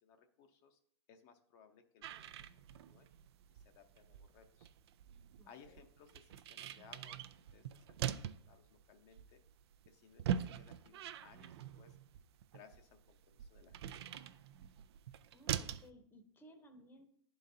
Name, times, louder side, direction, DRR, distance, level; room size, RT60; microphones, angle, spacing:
voice 1, 0.0-0.8 1.1-2.3 2.8-3.1 3.5-4.7 5.5-9.4 9.9-12.0 12.5-14.0, left 7 dB, 50° left, 5 dB, 0.8 m, -63 dB
sound 1, 2.0-15.9, right 9 dB, 70° right, 0.4 m, -44 dB
voice 2, 5.3-5.9 15.3-17.1, equal, 15° left, 5 dB, 0.8 m, -60 dB
11.0 x 3.9 x 2.7 m, 0.67 s
hypercardioid pair, 120°, 14 cm